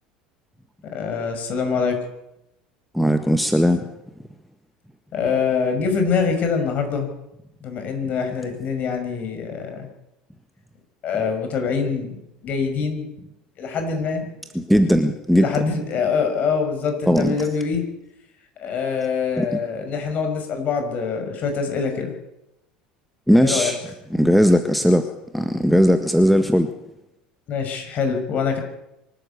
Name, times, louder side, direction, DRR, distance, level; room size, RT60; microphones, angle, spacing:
voice 1, 0.9-2.0 5.1-7.1 7.6-9.9 11.0-12.2 12.4-13.2 13.6-14.2 15.3-17.8 18.6-22.1 23.4-23.9 27.5-28.6, left 5 dB, 40° left, 5 dB, 6.0 m, -24 dB
voice 2, 2.9-3.8 14.5-15.5 17.1-17.3 19.4-19.5 23.3-23.8 24.1-25.1 25.3-26.7, equal, ahead, 8 dB, 1.5 m, -17 dB
24.5 x 13.0 x 8.5 m, 0.88 s
figure-of-eight pair, 70°, 4 cm